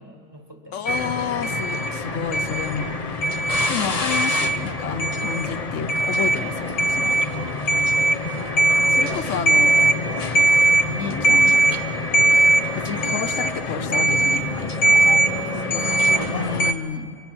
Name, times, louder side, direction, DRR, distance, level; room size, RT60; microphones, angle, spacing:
voice 1, 0.0-0.9 7.8-8.4 14.8-16.3, equal, 20° right, 4 dB, 1.6 m, -42 dB
voice 2, 0.7-3.0 3.7-7.2 8.9-9.7 10.8-11.7 12.7-14.9 16.3-17.2, left 7 dB, 80° left, 12 dB, 1.1 m, -30 dB
sound 1, 0.9-16.7, right 1 dB, 35° left, 0.8 m, -21 dB
30.0 x 22.0 x 6.2 m, 2.6 s
omnidirectional pair, 1.3 m